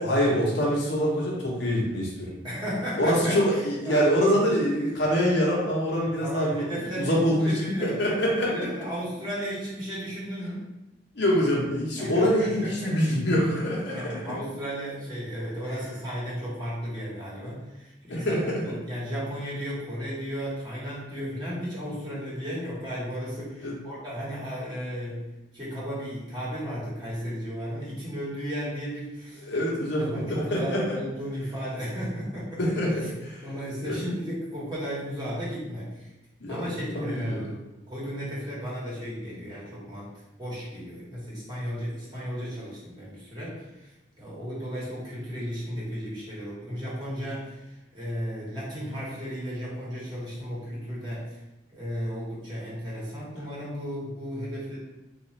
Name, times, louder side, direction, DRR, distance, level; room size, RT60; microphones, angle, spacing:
voice 1, 0.0-2.3 3.0-8.7 11.1-14.3 18.1-18.8 23.6-23.7 29.4-31.0 32.6-33.4 33.8-34.1 36.4-37.4, equal, 60° left, -4 dB, 0.9 m, -25 dB
voice 2, 2.4-3.6 3.8-4.5 5.9-8.0 8.4-10.7 12.0-13.2 13.9-25.3 25.5-29.7 30.0-32.6 33.4-36.1 36.5-40.1 40.4-43.9 44.2-51.4 51.7-54.8, equal, 25° right, -7 dB, 1.2 m, -34 dB
3.7 x 2.5 x 3.1 m, 0.99 s
head